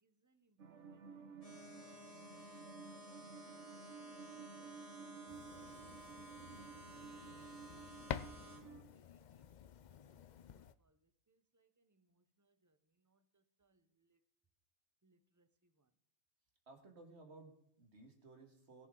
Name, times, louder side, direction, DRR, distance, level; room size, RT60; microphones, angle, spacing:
voice 1, 0.0-2.1 2.5-2.6 4.3-6.2 7.7-12.8 13.0-14.2 15.0-15.9, right 2 dB, 20° right, 0.6 m, -78 dB
sound 1, 0.6-8.8, right 6 dB, 80° right, 1.3 m, -54 dB
sound 2, 1.4-8.6, equal, 30° left, 2.3 m, -56 dB
sound 3, 5.3-10.7, left 8 dB, 55° left, 0.5 m, -50 dB
voice 2, 16.7-18.9, right 3 dB, 65° right, 2.3 m, -58 dB
21.5 x 7.3 x 3.8 m
omnidirectional pair, 1.2 m